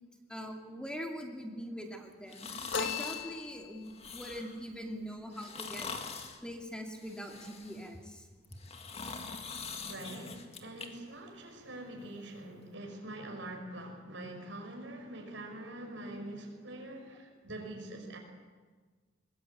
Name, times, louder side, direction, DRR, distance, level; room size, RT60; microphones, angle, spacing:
voice 1, 0.3-2.5 2.8-5.9 6.4-8.2, equal, 5° left, 2 dB, 2.4 m, -42 dB
sound 1, 2.3-3.3 3.9-4.6 5.3-6.4 7.0-7.9 8.4-10.9 11.3-11.4, left 4 dB, 35° left, 2.1 m, -43 dB
sound 2, 2.7-4.0, left 6 dB, 80° left, 1.6 m, -37 dB
voice 2, 9.7-18.2, right 1 dB, 85° right, 3 dB, 5.6 m, -44 dB
21.5 x 20.5 x 8.7 m, 1.4 s
head